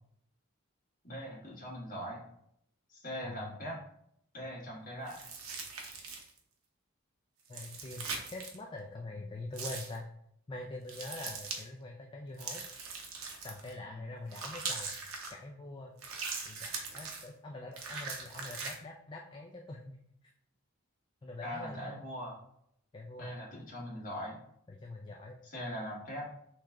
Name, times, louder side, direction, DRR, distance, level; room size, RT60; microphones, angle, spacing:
voice 1, 1.0-2.2 2.9-3.8 4.3-5.2 13.8-14.1 21.4-22.4 23.2-24.4 25.4-26.2, equal, 40° left, -4 dB, 1.5 m, -41 dB
voice 2, 3.2-3.7 7.5-10.1 10.5-12.7 13.4-14.9 15.3-16.0 16.4-20.0 21.2-21.9 22.9-23.4 24.7-25.4, left 2 dB, 25° left, 1 dB, 0.3 m, -44 dB
sound 1, 5.1-6.4 7.4-8.6 9.5-10.0 10.9-11.6 12.4-13.7 14.3-15.3 16.0-17.3 17.7-18.8, right 4 dB, 75° right, 0.8 m, -41 dB
3.6 x 3.1 x 3.3 m, 0.73 s
head